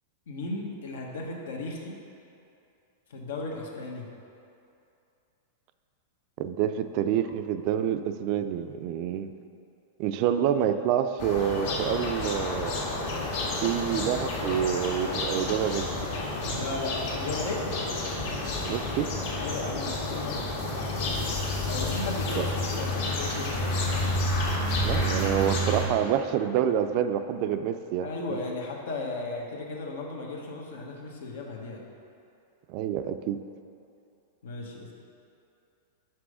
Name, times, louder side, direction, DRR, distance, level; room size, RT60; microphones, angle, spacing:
voice 1, 0.3-2.0 3.1-4.1 16.5-17.6 19.4-21.3 21.7-24.1 28.0-31.8 34.4-34.9, left 3 dB, 85° left, 0 dB, 1.2 m, -35 dB
voice 2, 6.4-9.3 10.0-12.8 13.6-15.8 18.7-19.1 22.3-22.4 24.8-28.1 32.7-33.4, right 9 dB, 45° right, 10 dB, 0.3 m, -27 dB
sound 1, 11.2-25.9, left 1 dB, 65° left, 1.8 m, -30 dB
6.0 x 5.5 x 4.9 m, 2.6 s
supercardioid pair, 145°, 0 cm